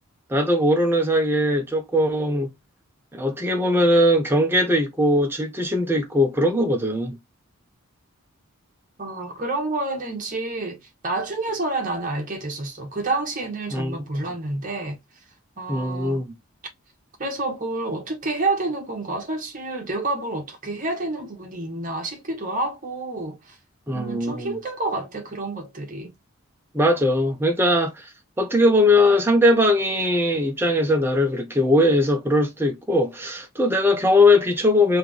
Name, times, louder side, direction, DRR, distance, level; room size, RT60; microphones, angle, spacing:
voice 1, 0.3-2.5 3.1-7.2 13.7-14.0 15.7-16.3 23.9-24.6 26.7-28.1 28.4-35.0, left 1 dB, 10° right, 0.8 m, -20 dB
voice 2, 9.0-15.0 15.6-16.2 17.2-23.6 23.9-26.2, right 2 dB, 35° right, 1.2 m, -29 dB
3.4 x 3.0 x 3.6 m
head